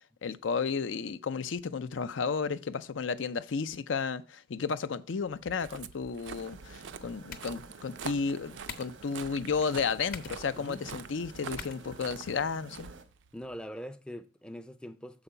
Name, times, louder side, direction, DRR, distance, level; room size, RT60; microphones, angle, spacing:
voice 1, 0.2-12.9, left 5 dB, 75° left, 0.5 m, -33 dB
Walk footsteps, 5.3-13.6, right 6 dB, 70° right, 0.4 m, -46 dB
sound 1, 6.3-13.0, right 3 dB, 90° right, 1.0 m, -51 dB
sound 2, 6.8-12.8, left 6 dB, 45° left, 0.9 m, -50 dB
voice 2, 10.6-10.9 13.3-15.2, equal, 5° left, 0.4 m, -43 dB
6.9 x 4.9 x 5.5 m
head